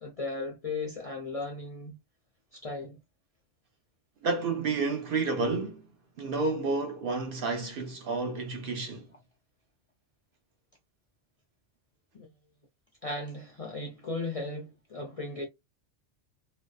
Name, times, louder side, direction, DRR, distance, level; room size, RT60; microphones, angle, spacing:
voice 1, 0.0-2.0 2.5-3.0 12.1-12.3 13.0-15.5, left 3 dB, 50° left, 0.4 m, -36 dB
voice 2, 4.2-5.9 6.2-9.1, right 3 dB, 60° right, 0.7 m, -30 dB
2.6 x 2.1 x 2.2 m
omnidirectional pair, 1.2 m